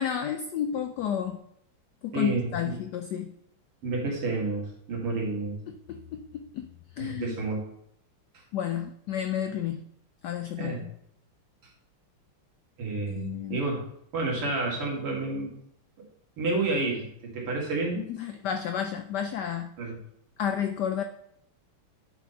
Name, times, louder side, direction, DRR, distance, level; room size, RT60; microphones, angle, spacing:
voice 1, 0.0-1.4 2.0-3.3 5.7-6.7 7.0-7.3 8.5-9.9 10.2-10.9 13.1-13.6 18.0-19.7 20.4-21.0, left 9 dB, 80° left, 7 dB, 0.9 m, -31 dB
voice 2, 2.1-2.7 3.8-5.6 7.0-7.6 10.6-10.8 12.8-13.8 14.1-15.6 16.4-18.0 19.8-20.0, right 3 dB, 85° right, -2 dB, 3.0 m, -30 dB
9.2 x 5.1 x 4.3 m, 0.72 s
omnidirectional pair, 2.4 m